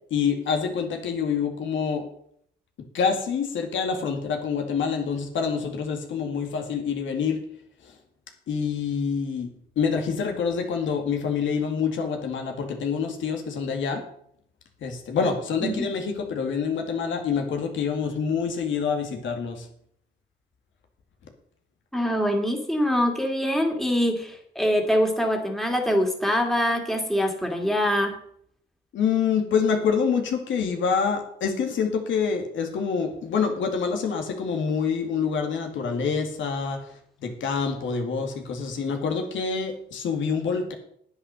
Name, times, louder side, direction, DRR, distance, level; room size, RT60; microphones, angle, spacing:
voice 1, 0.1-2.0 2.9-7.4 7.8-7.9 8.5-9.5 9.8-14.0 14.8-19.7 28.9-36.8 37.2-40.7, left 6 dB, 75° left, 4 dB, 2.1 m, -26 dB
voice 2, 21.9-28.2, equal, ahead, 2 dB, 2.4 m, -24 dB
9.7 x 8.5 x 6.3 m, 0.67 s
cardioid pair, 90°, 20 cm